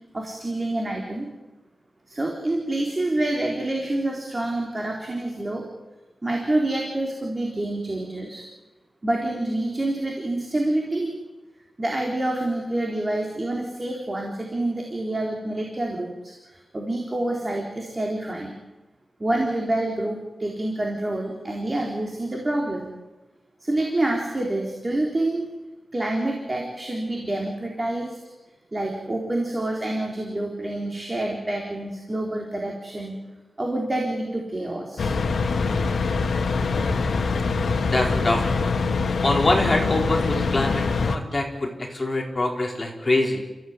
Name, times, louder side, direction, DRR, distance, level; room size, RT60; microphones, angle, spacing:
voice 1, 0.1-1.3 2.1-5.7 6.2-8.4 9.0-11.1 11.8-18.5 19.2-22.9 23.6-25.5 25.9-28.2 28.7-33.2 33.6-35.1, right 1 dB, 25° right, 0 dB, 3.5 m, -27 dB
sound 1, 35.0-41.2, left 4 dB, 75° left, 1.8 m, -24 dB
voice 2, 36.7-37.3 37.5-38.8 39.2-43.4, left 2 dB, 25° left, 0 dB, 4.3 m, -25 dB
30.0 x 15.5 x 9.5 m, 1.1 s
wide cardioid pair, 180°, 0 cm